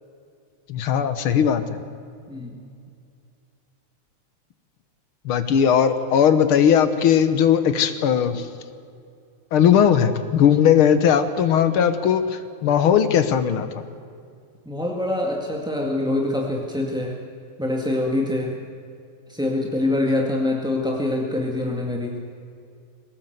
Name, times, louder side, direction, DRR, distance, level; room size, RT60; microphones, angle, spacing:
voice 1, 0.7-1.6 5.2-8.5 9.5-13.7, left 8 dB, 60° left, 10 dB, 1.5 m, -18 dB
voice 2, 2.3-2.7 14.6-17.2 17.6-18.5 19.3-22.2, left 2 dB, ahead, 0 dB, 1.1 m, -25 dB
22.5 x 18.5 x 8.0 m, 2.4 s
omnidirectional pair, 3.6 m